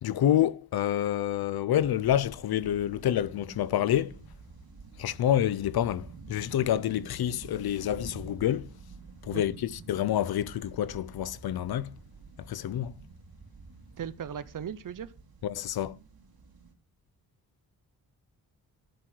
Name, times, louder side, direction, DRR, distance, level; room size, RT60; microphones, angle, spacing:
voice 1, 0.0-4.1 5.0-8.7 9.2-11.9 12.5-12.9 15.4-16.0, left 11 dB, 85° left, 0.7 m, -28 dB
sound 1, 1.8-16.7, right 4 dB, 75° right, 2.9 m, -49 dB
voice 2, 14.0-15.1, right 8 dB, 60° right, 0.8 m, -37 dB
12.0 x 4.6 x 6.2 m
wide cardioid pair, 125°, 36 cm